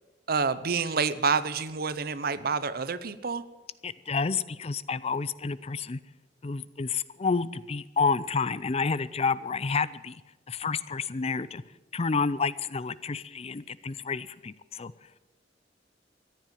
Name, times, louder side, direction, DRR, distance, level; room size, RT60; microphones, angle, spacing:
voice 1, 0.3-3.4, right 5 dB, 55° right, 14 dB, 0.8 m, -28 dB
voice 2, 3.8-6.0 6.4-10.2 10.5-11.6 11.9-14.9, left 4 dB, 35° left, 17 dB, 0.5 m, -29 dB
14.5 x 10.5 x 9.3 m, 1.1 s
head